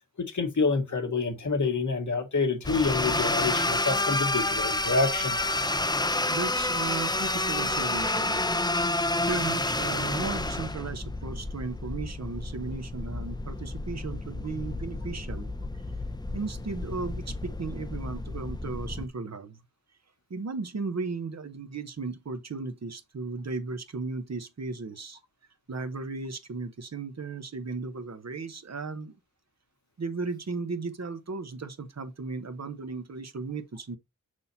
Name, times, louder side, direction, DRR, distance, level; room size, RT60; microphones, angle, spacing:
voice 1, 0.2-5.4, left 4 dB, 60° left, 1.5 m, -27 dB
sound 1, 2.6-19.1, left 2 dB, 15° left, 0.6 m, -30 dB
voice 2, 6.3-8.5 9.3-15.5 16.3-19.6 20.3-25.2 25.7-29.1 30.0-34.0, right 4 dB, 50° right, 1.0 m, -35 dB
6.2 x 5.6 x 2.7 m
cardioid pair, 55°, 33 cm